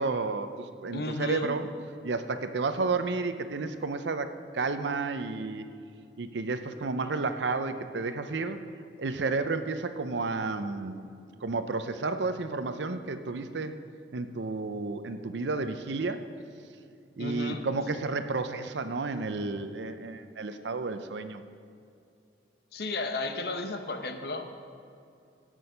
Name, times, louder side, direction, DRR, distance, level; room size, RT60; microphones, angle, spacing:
voice 1, 0.0-1.7 2.0-5.6 6.2-8.6 9.0-11.0 11.4-13.8 14.1-16.2 17.2-21.4, right 3 dB, 90° right, 9 dB, 0.6 m, -31 dB
voice 2, 0.9-1.5 17.2-17.6 22.7-24.4, left 2 dB, 65° left, 6 dB, 0.9 m, -33 dB
17.5 x 6.3 x 5.6 m, 2.5 s
head